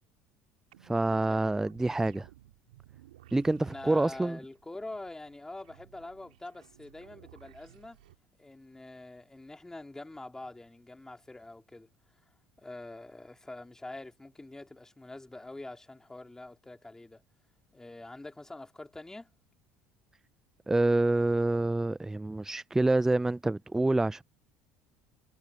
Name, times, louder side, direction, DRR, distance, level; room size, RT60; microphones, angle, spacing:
sound 1, 0.7-8.1, right 14 dB, 75° right, 3.5 m, -57 dB
voice 1, 0.8-2.3 3.3-4.4 20.7-24.2, right 2 dB, 10° right, 0.5 m, -27 dB
voice 2, 3.7-8.0 8.4-11.9 12.6-17.2 17.7-19.3, left 2 dB, 10° left, 4.1 m, -45 dB
hypercardioid pair, 65°, 5 cm